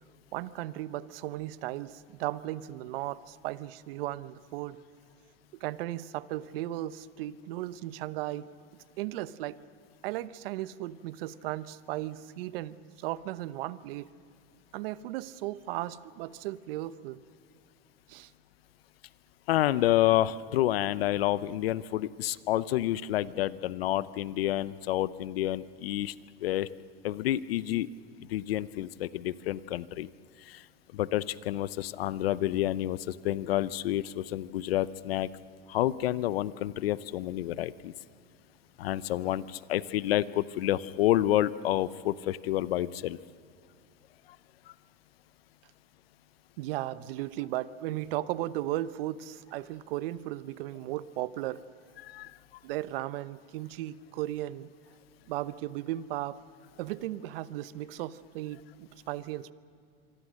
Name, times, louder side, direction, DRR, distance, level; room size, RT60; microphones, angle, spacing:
voice 1, 0.3-4.8 5.6-8.5 9.0-9.6 10.0-14.1 14.7-17.2 18.1-18.3 46.6-51.6 52.6-54.7 55.3-56.4 56.8-59.5, right 15 dB, 75° right, 15 dB, 0.9 m, -36 dB
voice 2, 19.5-26.1 26.4-26.7 27.0-27.9 28.2-30.1 30.4-30.6 30.9-35.3 35.7-37.9 38.8-43.2 52.0-52.3, left 14 dB, 85° left, 17 dB, 0.8 m, -29 dB
26.5 x 24.5 x 6.4 m, 2.3 s
hypercardioid pair, 100°, 29 cm